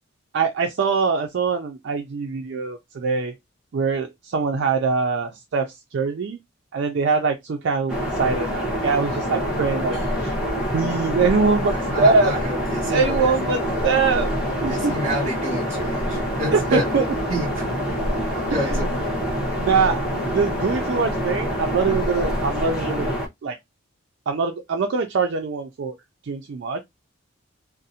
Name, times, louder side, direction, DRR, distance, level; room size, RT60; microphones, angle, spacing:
voice 1, 0.3-3.4 3.7-6.4 6.7-10.3 10.7-12.3 12.9-14.9 16.5-17.0 18.5-18.9 19.6-23.1 23.4-23.6 24.3-25.9 26.3-26.8, right 4 dB, 55° right, 0.3 m, -23 dB
sound 1, 7.9-23.3, equal, 5° right, 0.7 m, -26 dB
voice 2, 11.9-13.3 14.7-16.8 17.3-18.0 18.5-19.0, equal, 30° right, 1.2 m, -29 dB
2.5 x 2.0 x 2.7 m
head